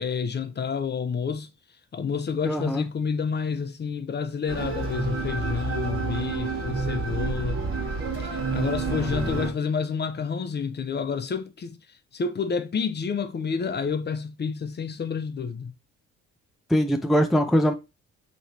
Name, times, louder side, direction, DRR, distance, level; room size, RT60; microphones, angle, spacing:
voice 1, 0.0-1.5 1.9-7.7 8.2-11.8 12.1-15.7, left 6 dB, 35° left, 0.7 m, -29 dB
voice 2, 2.4-2.9 8.9-9.5 16.7-17.7, equal, ahead, 0.4 m, -23 dB
sound 1, 4.5-9.5, right 4 dB, 45° right, 1.6 m, -29 dB
3.1 x 3.0 x 4.2 m
cardioid pair, 90°, 30 cm